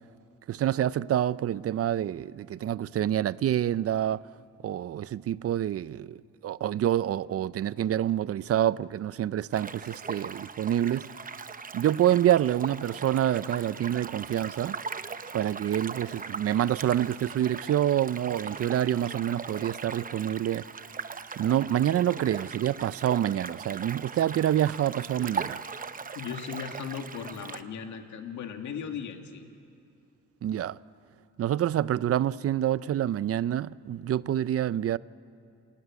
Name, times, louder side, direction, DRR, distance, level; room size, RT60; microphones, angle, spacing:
voice 1, 0.5-4.2 4.6-6.2 6.4-11.1 11.7-14.8 15.3-20.6 21.4-25.6 30.4-30.8 31.4-35.0, right 11 dB, 50° right, 0.6 m, -27 dB
sound 1, 9.5-27.6, right 5 dB, 30° right, 0.9 m, -39 dB
voice 2, 26.1-29.4, left 7 dB, 75° left, 2.2 m, -37 dB
27.5 x 16.0 x 9.6 m
cardioid pair, 90°, 30 cm